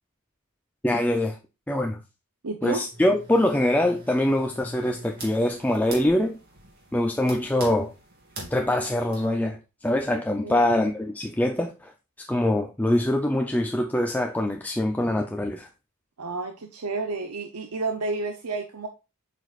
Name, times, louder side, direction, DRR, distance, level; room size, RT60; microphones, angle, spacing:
voice 1, 0.8-1.4 1.7-2.0 2.6-6.4 6.9-7.9 8.5-11.9 12.2-15.7, left 1 dB, 5° left, 0.5 m, -24 dB
voice 2, 2.4-2.8 10.4-10.8 16.2-18.9, right 3 dB, 85° right, 0.8 m, -31 dB
sound 1, 2.9-9.3, right 1 dB, 45° right, 2.7 m, -43 dB
7.8 x 5.1 x 2.5 m
head